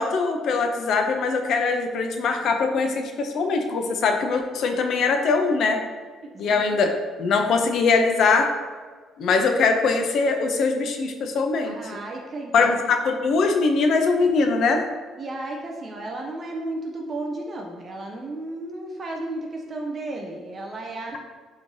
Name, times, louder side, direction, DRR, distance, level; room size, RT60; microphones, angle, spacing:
voice 1, 0.0-5.8 6.4-8.5 9.2-11.8 12.5-14.8, left 4 dB, 50° left, 5 dB, 0.3 m, -22 dB
voice 2, 6.3-6.8 7.4-7.5 11.6-12.7 14.2-14.3 15.2-21.2, right 2 dB, 25° right, 1 dB, 0.3 m, -34 dB
3.1 x 2.6 x 3.6 m, 1.5 s
cardioid pair, 175°, 0 cm